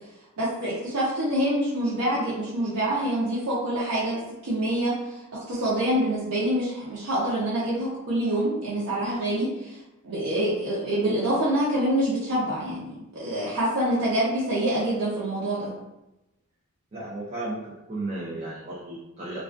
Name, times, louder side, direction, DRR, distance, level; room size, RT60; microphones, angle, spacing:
voice 1, 0.4-5.2 5.5-9.8 10.0-15.7, right 1 dB, 90° right, -8 dB, 0.6 m, -26 dB
voice 2, 16.9-19.4, right 2 dB, 35° right, -8 dB, 0.5 m, -34 dB
2.3 x 2.3 x 2.4 m, 0.93 s
head